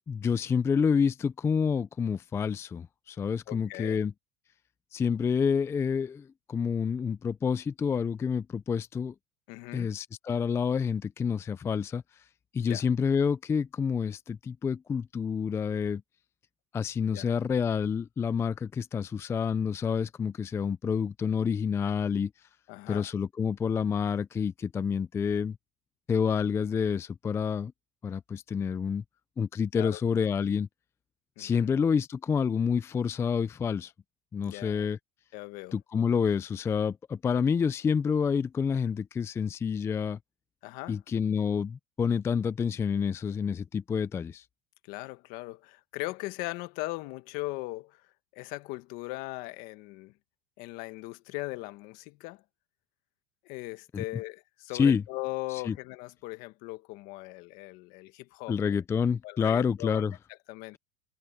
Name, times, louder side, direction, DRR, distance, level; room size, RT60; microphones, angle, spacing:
voice 1, 0.1-4.1 4.9-9.1 9.7-12.0 12.5-16.0 16.7-22.3 22.9-25.6 26.1-27.7 28.0-29.0 29.4-30.7 31.4-33.9 34.3-35.0 35.7-40.2 40.9-44.4 53.9-54.0 54.7-55.0 55.5-55.7 58.5-60.1, left 6 dB, 15° left, 0.4 m, -28 dB
voice 2, 3.5-4.0 9.5-9.9 12.6-12.8 17.1-17.3 22.7-23.1 29.8-30.0 31.4-31.7 34.4-34.9 35.3-35.8 40.6-41.0 44.9-48.0 48.3-50.1 50.6-52.4 53.4-58.8 59.2-60.1 60.5-60.8, left 21 dB, 60° left, 1.5 m, -39 dB
supercardioid pair, 140°, 16 cm